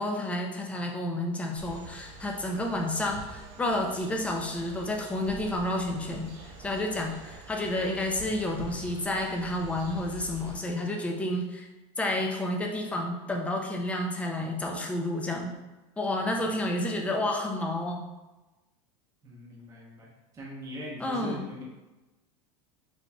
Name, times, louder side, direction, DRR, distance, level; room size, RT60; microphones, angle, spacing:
voice 1, 0.0-6.3 6.6-11.7 12.0-15.5 16.0-18.0 21.0-21.5, left 1 dB, 10° left, 1 dB, 0.4 m, -30 dB
sound 1, 1.5-10.6, right 3 dB, 60° right, 0.9 m, -46 dB
voice 2, 19.2-21.6, equal, 20° right, -5 dB, 0.8 m, -41 dB
4.1 x 3.1 x 2.3 m, 1.1 s
supercardioid pair, 135°, 16 cm